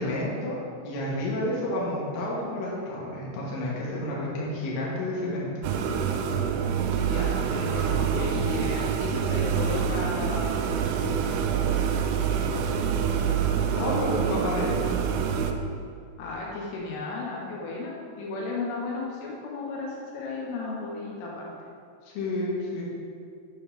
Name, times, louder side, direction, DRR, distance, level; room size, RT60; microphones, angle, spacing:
voice 1, 0.0-5.5 13.8-14.8 22.0-22.8, left 1 dB, 70° left, -5 dB, 3.5 m, -30 dB
sound 1, 5.6-15.5, right 7 dB, 90° right, 3.2 m, -26 dB
voice 2, 6.9-10.7 12.4-12.7 16.2-21.5, left 3 dB, 85° left, -3 dB, 3.6 m, -34 dB
8.9 x 3.9 x 5.6 m, 2.3 s
omnidirectional pair, 5.6 m